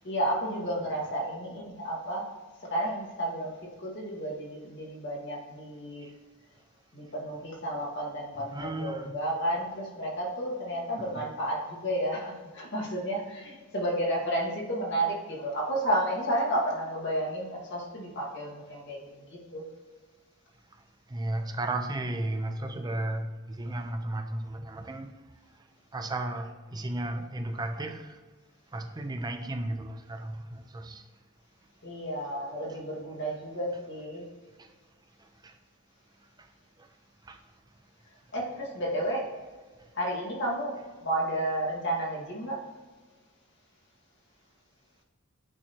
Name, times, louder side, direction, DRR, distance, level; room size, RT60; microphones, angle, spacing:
voice 1, 0.0-2.3 2.7-6.1 6.9-19.6 31.8-34.3 38.3-39.3 39.9-42.6, right 1 dB, 60° left, 1.9 m, -32 dB
voice 2, 8.4-9.2 11.0-11.3 21.1-25.2 25.9-28.2 28.7-31.0 34.6-34.7 35.2-35.5 36.4-36.5 36.8-36.9 37.2-37.4, right 2 dB, 20° right, 0.5 m, -34 dB
8.7 x 3.1 x 4.3 m
head